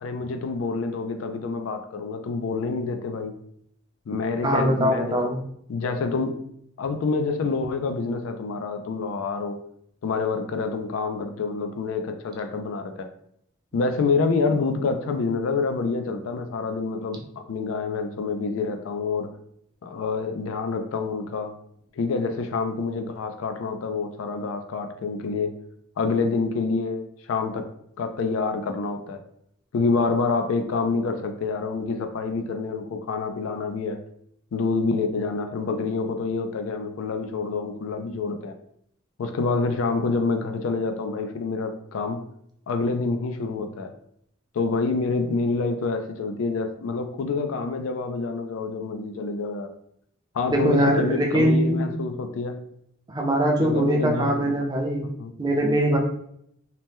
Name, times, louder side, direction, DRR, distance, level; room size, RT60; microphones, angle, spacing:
voice 1, 0.0-3.3 4.1-5.2 5.7-6.3 6.8-9.6 10.0-13.1 13.7-19.3 19.8-21.5 22.0-25.5 26.0-27.7 28.0-29.2 29.7-34.0 34.5-38.5 39.2-42.2 42.7-43.9 44.5-49.7 50.3-52.6 53.6-54.5 55.2-55.3, left 4 dB, 80° left, 6 dB, 0.4 m, -27 dB
voice 2, 4.4-5.4 50.5-51.9 53.1-55.1 55.4-56.0, right 1 dB, 20° right, 0 dB, 0.5 m, -22 dB
2.8 x 2.1 x 3.3 m, 0.70 s
head